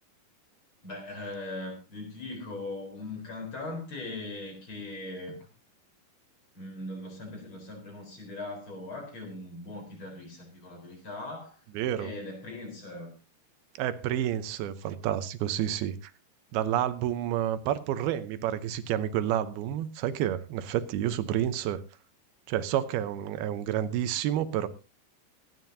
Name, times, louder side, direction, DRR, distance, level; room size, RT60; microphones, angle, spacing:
voice 1, 0.8-5.4 6.5-11.6 11.9-13.1, left 2 dB, 35° left, 2 dB, 4.7 m, -40 dB
voice 2, 11.7-12.1 13.8-16.0 16.5-21.8 22.5-24.7, right 11 dB, 90° right, 12 dB, 2.8 m, -29 dB
25.5 x 9.3 x 2.7 m, 0.30 s
omnidirectional pair, 4.3 m